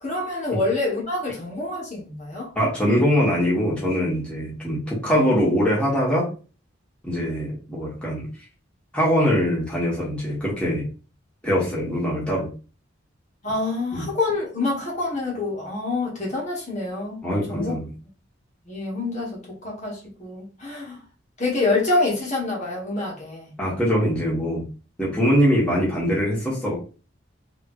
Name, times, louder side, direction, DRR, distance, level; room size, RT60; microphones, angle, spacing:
voice 1, 0.0-2.5 13.4-17.2 17.5-17.7 18.7-21.0 21.4-23.5, left 2 dB, 35° left, 1.5 m, -26 dB
voice 2, 2.5-6.3 7.0-8.2 8.9-10.8 11.4-12.5 13.9-14.0 17.2-17.9 23.6-24.6 25.0-26.8, equal, 5° left, 1.6 m, -22 dB
3.7 x 3.4 x 3.1 m
head